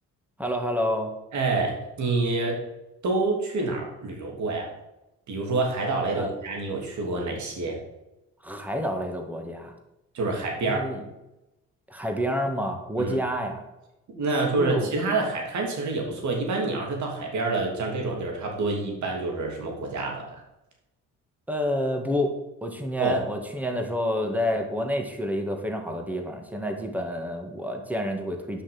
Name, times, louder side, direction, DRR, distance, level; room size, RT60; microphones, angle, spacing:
voice 1, 0.4-1.1 6.1-6.3 8.4-9.7 10.6-11.0 11.9-13.6 14.6-14.9 21.5-28.6, equal, 5° right, 3 dB, 2.0 m, -28 dB
voice 2, 1.3-2.6 3.0-4.7 5.3-7.8 10.1-10.9 13.0-13.1 14.1-20.4 23.0-23.2, right 3 dB, 70° right, 1 dB, 3.1 m, -27 dB
10.0 x 6.0 x 6.1 m, 0.94 s
cardioid pair, 90°, 30 cm